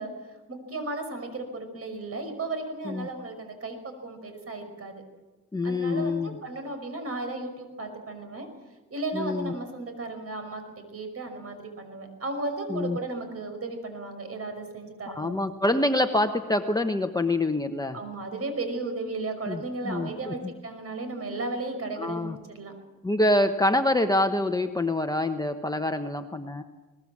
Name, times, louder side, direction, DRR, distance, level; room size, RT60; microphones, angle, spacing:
voice 1, 0.0-5.0 5.6-8.5 8.9-10.6 10.9-15.4 17.9-22.7, right 2 dB, 50° right, 7 dB, 5.7 m, -35 dB
voice 2, 5.5-6.4 9.1-9.5 12.7-13.0 15.1-18.0 19.5-20.3 22.0-22.4 23.0-26.6, left 1 dB, 10° left, 6 dB, 1.1 m, -26 dB
21.5 x 20.0 x 7.4 m, 1.2 s
cardioid pair, 95°, 31 cm